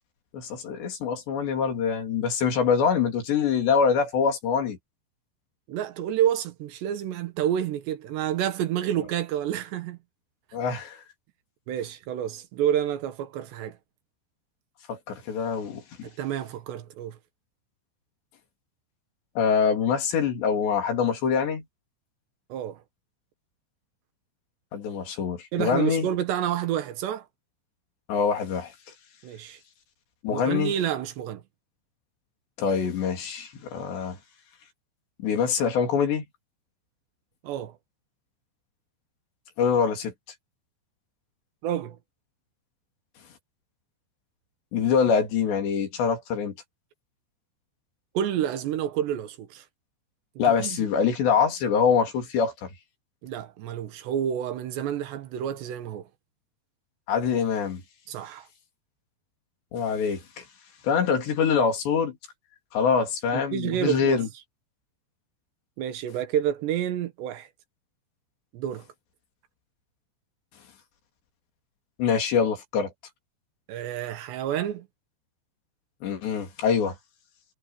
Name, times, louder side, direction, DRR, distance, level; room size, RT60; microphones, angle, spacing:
voice 1, 0.3-4.8 10.5-11.0 14.9-16.1 19.4-21.6 24.7-26.1 28.1-28.7 30.2-30.7 32.6-34.2 35.2-36.2 39.6-40.1 44.7-46.5 50.4-52.7 57.1-57.8 59.7-60.4 60.8-62.2 62.7-64.3 72.0-72.9 76.0-77.0, left 6 dB, 75° left, 5.6 m, -24 dB
voice 2, 5.7-10.0 11.7-13.8 16.0-17.2 22.5-22.8 25.5-27.3 29.2-29.6 30.3-31.4 37.4-37.7 41.6-42.0 48.2-49.7 50.6-50.8 53.2-56.1 58.1-58.5 63.3-64.2 65.8-67.5 68.5-68.9 73.7-74.9, right 10 dB, 75° right, 3.6 m, -29 dB
omnidirectional pair, 5.1 m